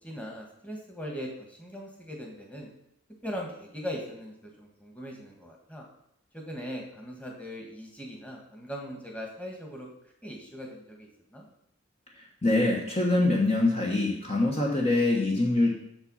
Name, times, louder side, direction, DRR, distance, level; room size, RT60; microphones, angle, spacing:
voice 1, 0.0-2.7 3.2-5.8 6.3-9.9 10.2-11.5, equal, 5° left, 0 dB, 1.7 m, -40 dB
voice 2, 12.2-15.7, left 2 dB, 30° left, -1 dB, 1.3 m, -24 dB
7.9 x 7.0 x 5.6 m, 0.78 s
head